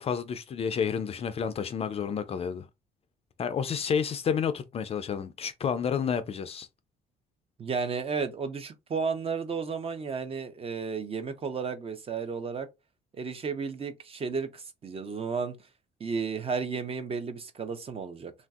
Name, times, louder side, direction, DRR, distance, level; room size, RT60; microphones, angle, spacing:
voice 1, 0.0-2.7 3.4-6.7, left 7 dB, 35° left, 0.4 m, -30 dB
voice 2, 7.6-12.7 13.2-15.6 16.0-18.3, right 5 dB, 35° right, 0.6 m, -33 dB
3.2 x 2.5 x 2.3 m
cardioid pair, 110°, 17 cm